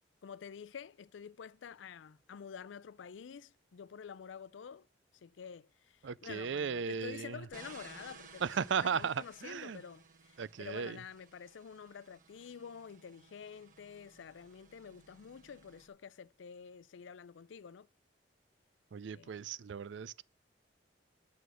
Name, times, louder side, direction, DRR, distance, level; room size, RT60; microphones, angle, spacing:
voice 1, 0.2-4.9 5.1-17.9 19.1-19.5, left 7 dB, 85° left, 0.4 m, -49 dB
voice 2, 6.0-7.4 8.4-9.8 10.4-11.0 18.9-20.2, right 6 dB, 80° right, 0.4 m, -36 dB
sound 1, 7.5-15.9, right 5 dB, 45° right, 1.3 m, -58 dB
9.1 x 6.5 x 6.2 m
head